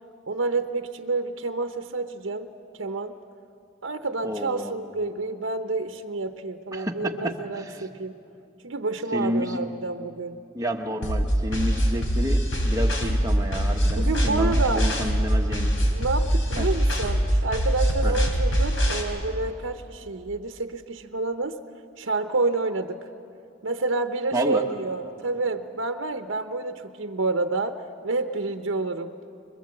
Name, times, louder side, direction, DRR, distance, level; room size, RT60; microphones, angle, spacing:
voice 1, 0.3-2.5 2.8-3.2 3.8-8.1 8.6-10.4 13.9-14.9 15.9-21.6 22.0-23.0 23.6-29.1, right 3 dB, 85° right, 7 dB, 0.8 m, -29 dB
voice 2, 4.2-4.7 6.7-7.8 9.1-9.6 10.5-15.7 16.6-16.7 18.0-18.2 24.3-24.6, equal, 20° right, 3 dB, 1.3 m, -30 dB
sound 1, 11.0-19.0, equal, 80° left, 3.8 m, -23 dB
25.5 x 22.0 x 7.7 m, 2.6 s
head